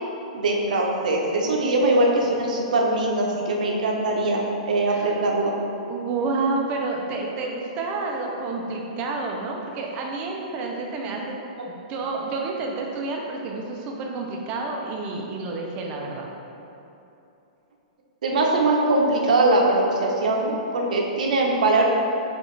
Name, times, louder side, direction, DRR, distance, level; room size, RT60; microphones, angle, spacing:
voice 1, 0.3-4.4 4.7-5.5 18.2-21.9, right 2 dB, 80° right, 0 dB, 0.7 m, -21 dB
voice 2, 4.9-5.2 5.9-11.4 11.6-16.3, right 3 dB, 25° right, 0 dB, 0.5 m, -29 dB
6.1 x 2.4 x 3.2 m, 2.9 s
hypercardioid pair, 160°, 4 cm